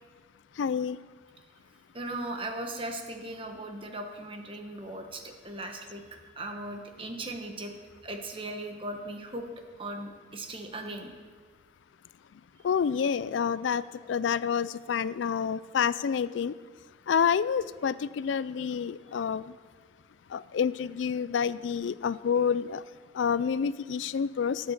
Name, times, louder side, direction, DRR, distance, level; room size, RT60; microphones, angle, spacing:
voice 1, 0.6-1.0 12.6-13.8 14.1-16.5 17.1-19.5 20.3-22.8 23.1-24.7, left 7 dB, 85° left, 18 dB, 0.4 m, -28 dB
voice 2, 1.9-6.0 6.4-7.7 8.0-9.5 9.8-11.1, right 1 dB, 30° right, 4 dB, 1.3 m, -38 dB
13.5 x 8.1 x 6.5 m, 1.5 s
head